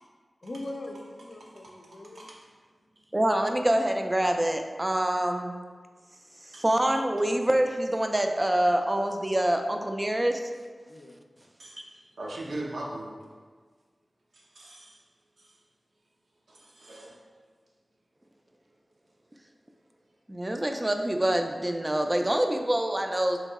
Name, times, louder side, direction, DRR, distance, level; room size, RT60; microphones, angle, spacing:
voice 1, 0.4-2.3 10.8-11.2, left 1 dB, 65° left, 1 dB, 0.4 m, -41 dB
voice 2, 1.4-2.5 6.5-6.6 11.6-11.8 12.2-13.1 14.3-15.0 15.4-15.5 16.5-17.2, right 1 dB, 85° right, -3 dB, 0.7 m, -40 dB
voice 3, 3.1-5.5 6.5-10.4 20.3-23.4, right 1 dB, 20° right, 5 dB, 0.3 m, -26 dB
3.0 x 2.7 x 3.5 m, 1.5 s
wide cardioid pair, 80°, 0 cm